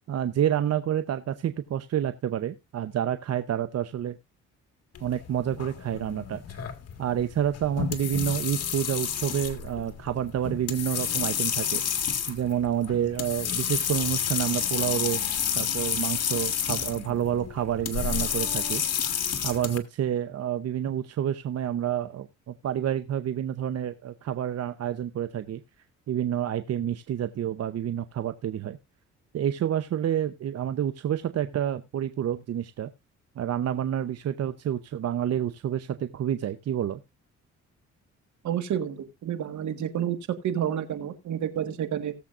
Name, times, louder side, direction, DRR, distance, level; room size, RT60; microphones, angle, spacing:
voice 1, 0.1-4.2 5.0-6.7 7.0-11.8 12.3-15.2 15.6-19.0 19.4-25.6 26.1-28.8 29.3-32.9 33.4-37.0, right 10 dB, 55° right, 11 dB, 0.8 m, -29 dB
sound 1, 5.0-19.8, left 8 dB, 55° left, 1.8 m, -30 dB
voice 2, 38.4-40.2 40.4-42.1, right 9 dB, 70° right, 9 dB, 1.7 m, -29 dB
18.5 x 7.4 x 2.5 m, 0.23 s
cardioid pair, 90°, 30 cm